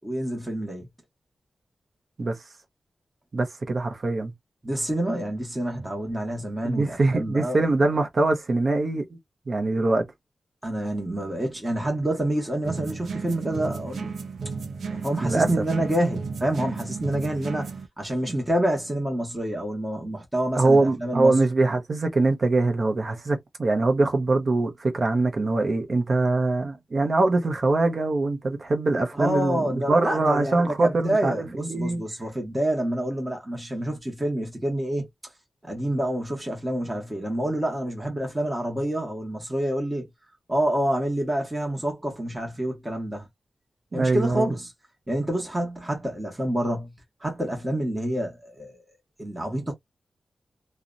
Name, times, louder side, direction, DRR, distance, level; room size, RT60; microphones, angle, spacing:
voice 1, 0.0-0.9 4.6-7.7 10.6-14.2 14.9-21.4 29.1-35.1 35.6-40.1 40.5-43.3 43.9-44.7 45.1-46.9 47.2-48.8 49.2-49.7, right 1 dB, 10° right, 0.8 m, -27 dB
voice 2, 3.3-4.3 6.6-9.2 9.5-10.0 15.2-15.6 20.6-32.0 43.9-44.5, right 2 dB, 40° right, 0.6 m, -23 dB
sound 1, 12.6-17.9, right 4 dB, 85° right, 0.5 m, -34 dB
2.7 x 2.1 x 2.4 m
wide cardioid pair, 165°, 0 cm